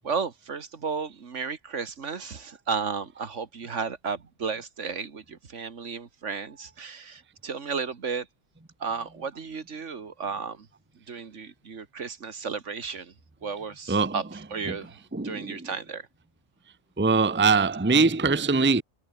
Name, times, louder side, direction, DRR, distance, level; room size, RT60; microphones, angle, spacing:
voice 1, 0.0-8.3 8.8-10.7 11.1-13.1 13.4-14.2 14.5-14.9 15.2-16.1, right 5 dB, 60° right, 1.9 m, -33 dB
voice 2, 13.9-14.2 14.7-14.8 15.1-15.7 17.0-18.8, right 4 dB, 10° right, 0.8 m, -22 dB
omnidirectional pair, 1.4 m